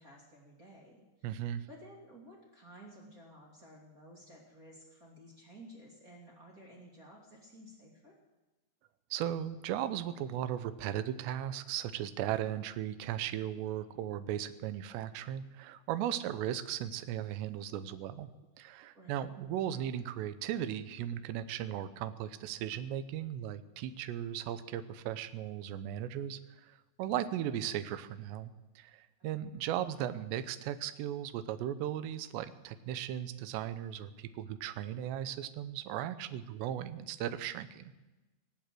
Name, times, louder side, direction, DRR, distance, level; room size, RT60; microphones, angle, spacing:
voice 1, 0.0-8.2 18.9-19.3 29.4-29.5, equal, 25° right, -3 dB, 2.2 m, -54 dB
voice 2, 1.2-1.7 9.1-18.3 18.6-26.4 26.7-37.9, right 11 dB, 80° right, 12 dB, 2.9 m, -37 dB
20.5 x 8.5 x 7.7 m, 1.1 s
omnidirectional pair, 5.2 m